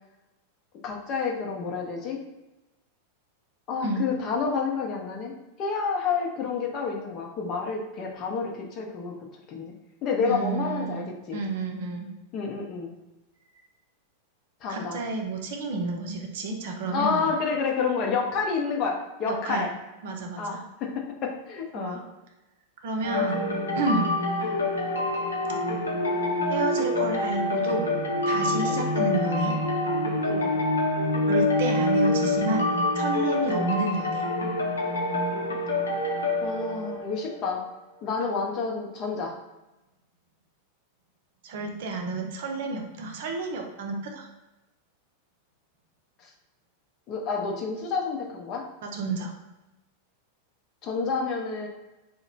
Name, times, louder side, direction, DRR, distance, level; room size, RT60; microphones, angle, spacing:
voice 1, 0.8-2.2 3.7-5.3 5.6-9.1 9.5-9.7 10.0-11.4 12.3-12.9 14.6-15.0 16.9-19.7 20.4-22.0 28.6-28.8 30.3-30.5 33.5-33.7 36.4-37.6 38.0-39.4 46.2-46.3 47.1-48.6 50.8-51.7, left 5 dB, 35° left, 0 dB, 0.7 m, -29 dB
voice 2, 10.2-12.1 14.7-17.3 19.3-19.7 20.0-20.6 21.7-22.0 22.8-23.5 23.8-24.2 26.5-27.9 28.3-29.5 31.3-34.2 38.2-38.3 41.4-44.3 48.8-49.3, right 3 dB, 55° right, 3 dB, 0.5 m, -30 dB
sound 1, 23.0-37.5, left 2 dB, 75° left, 0.6 m, -26 dB
2.9 x 2.1 x 4.0 m, 1.0 s
figure-of-eight pair, 90°, 0 cm